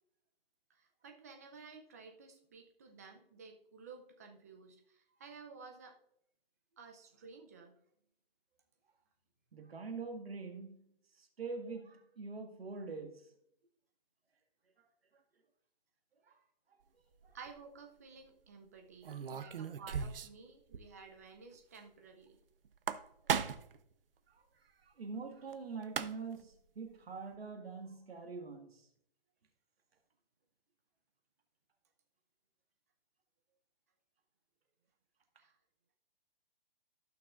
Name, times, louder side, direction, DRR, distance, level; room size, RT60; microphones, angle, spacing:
voice 1, 0.7-6.0 6.8-7.7 17.3-22.4 35.4-35.6, right 5 dB, 15° right, 0.6 m, -54 dB
voice 2, 9.5-13.3 16.3-16.4 17.0-17.4 19.1-19.6 24.3-28.9, right 4 dB, 85° right, 1.9 m, -45 dB
sound 1, 17.2-17.5 19.0-20.5 20.7-20.8 21.1-21.2 22.6-23.8 25.5-25.6 25.8-26.4, right 7 dB, 70° right, 0.7 m, -37 dB
14.5 x 6.1 x 2.5 m
hypercardioid pair, 170°, 29 cm